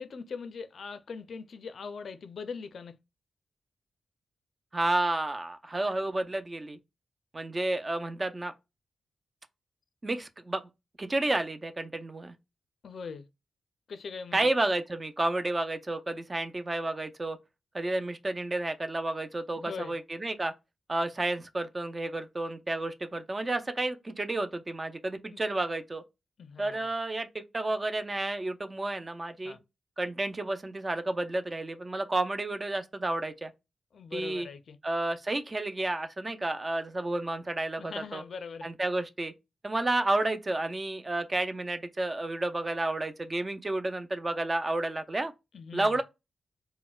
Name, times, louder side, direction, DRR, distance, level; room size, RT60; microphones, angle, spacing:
voice 1, 0.0-3.0 12.8-13.3 13.9-14.5 19.6-19.9 25.3-25.4 26.4-26.9 29.4-29.6 33.9-34.8 37.8-38.7 45.5-46.0, left 5 dB, 65° left, 0.4 m, -41 dB
voice 2, 4.7-6.8 7.3-8.5 10.0-10.6 11.0-12.3 14.3-17.4 17.7-20.5 20.9-26.0 26.6-29.6 30.0-33.5 34.1-34.5 34.8-38.2 38.6-39.3 39.6-45.3 45.7-46.0, right 2 dB, 25° right, 0.4 m, -31 dB
4.0 x 2.1 x 2.2 m
wide cardioid pair, 105°, 0 cm